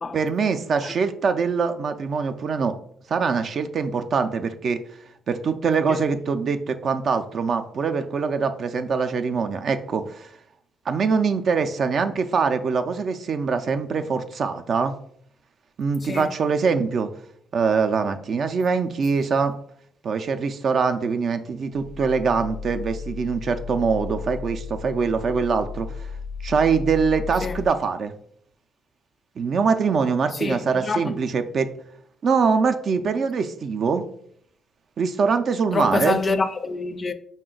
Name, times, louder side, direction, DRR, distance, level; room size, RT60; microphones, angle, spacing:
voice 1, 0.1-2.8 3.1-4.8 5.3-10.3 10.9-14.9 15.8-17.1 17.5-19.5 20.0-25.9 26.4-28.1 29.4-31.7 32.2-34.0 35.0-36.2, right 5 dB, 55° right, 0.4 m, -23 dB
sound 1, 21.7-27.7, left 5 dB, 80° right, 0.8 m, -35 dB
voice 2, 30.3-31.1 35.7-37.1, left 3 dB, 35° left, 0.4 m, -26 dB
4.9 x 2.2 x 3.8 m
cardioid pair, 90°, 0 cm